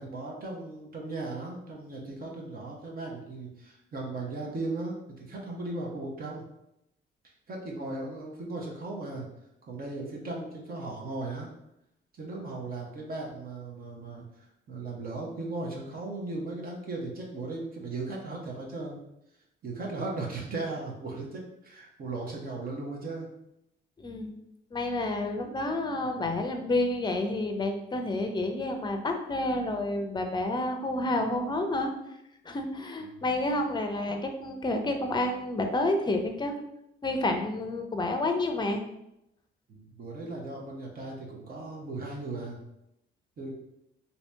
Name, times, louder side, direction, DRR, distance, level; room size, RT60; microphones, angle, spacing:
voice 1, 0.0-6.4 7.5-9.3 9.7-11.5 12.2-19.0 19.6-23.3 26.0-26.2 33.1-33.2 39.7-42.6 43.4-43.5, right 2 dB, 45° right, -2 dB, 0.9 m, -37 dB
voice 2, 24.0-24.3 24.7-31.9 32.5-36.5 37.0-38.8, left 2 dB, 20° left, 5 dB, 0.5 m, -29 dB
2.8 x 2.8 x 3.4 m, 0.83 s
cardioid pair, 90°, 20 cm